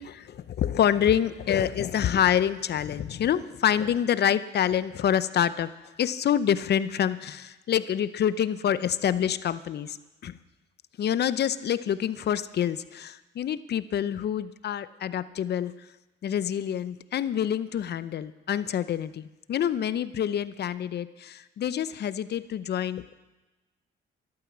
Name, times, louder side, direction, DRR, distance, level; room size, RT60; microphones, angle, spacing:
voice 1, 0.0-5.7 6.0-10.0 10.2-10.3 11.0-15.7 16.2-23.1, left 9 dB, 55° left, 15 dB, 0.7 m, -27 dB
13.5 x 11.5 x 6.1 m, 1.1 s
cardioid pair, 90°, 20 cm